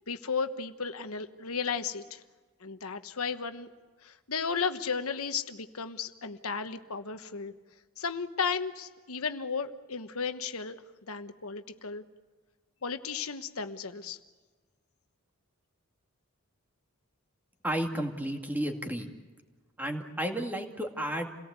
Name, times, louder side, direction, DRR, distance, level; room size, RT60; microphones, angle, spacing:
voice 1, 0.1-2.2 2.6-3.7 4.0-7.5 8.0-10.8 11.1-12.0 12.8-14.2, left 5 dB, 80° left, 9 dB, 1.2 m, -34 dB
voice 2, 17.6-19.1 19.8-21.3, right 1 dB, 10° right, 3 dB, 2.2 m, -32 dB
28.5 x 18.0 x 8.2 m, 1.4 s
head